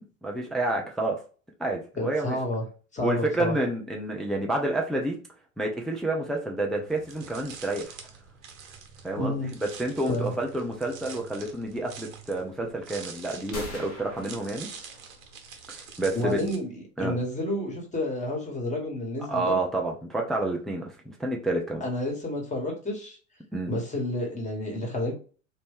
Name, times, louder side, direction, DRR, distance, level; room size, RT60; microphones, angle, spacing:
voice 1, 0.2-1.2 1.6-2.4 3.0-5.2 5.6-8.0 9.0-14.7 15.7-16.5 17.0-17.2 19.3-21.8 23.5-23.7, right 2 dB, ahead, 1 dB, 0.3 m, -29 dB
voice 2, 2.0-2.6 2.9-3.5 9.2-9.5 10.1-10.3 16.1-19.6 21.8-23.2 23.7-25.1, left 1 dB, 15° left, 0 dB, 1.4 m, -30 dB
sound 1, 6.9-16.6, right 6 dB, 60° right, 1.0 m, -46 dB
sound 2, 13.5-15.4, left 1 dB, 85° left, 1.2 m, -41 dB
3.0 x 2.6 x 3.5 m, 0.38 s
hypercardioid pair, 95°, 42 cm